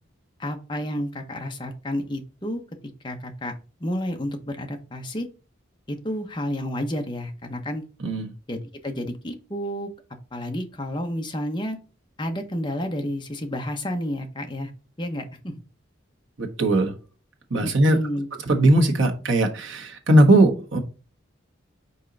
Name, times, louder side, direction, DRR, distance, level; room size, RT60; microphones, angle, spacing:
voice 1, 0.4-2.6 3.0-3.5 3.8-5.3 5.9-7.8 8.5-9.9 10.3-11.8 12.2-14.7 15.0-15.6 17.6-18.3, equal, 25° left, 4 dB, 0.9 m, -30 dB
voice 2, 8.0-8.3 16.4-16.9 17.5-18.0 18.5-20.8, right 1 dB, 70° right, 3 dB, 1.4 m, -19 dB
5.5 x 4.5 x 4.0 m, 0.35 s
head